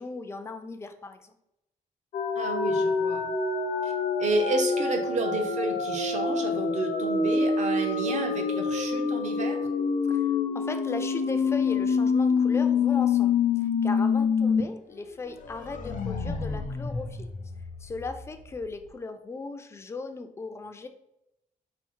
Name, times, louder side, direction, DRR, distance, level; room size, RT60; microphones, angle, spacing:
voice 1, 0.0-1.4 10.1-17.3 17.8-20.9, left 3 dB, 20° left, 7 dB, 0.3 m, -38 dB
sound 1, 2.1-14.6 15.0-15.1 15.4-18.1, left 5 dB, 65° left, 0.6 m, -26 dB
voice 2, 2.4-3.3 3.8-3.9 4.2-9.6, right 2 dB, 55° right, 4 dB, 0.7 m, -31 dB
4.3 x 2.0 x 4.5 m, 0.84 s
wide cardioid pair, 155°, 14 cm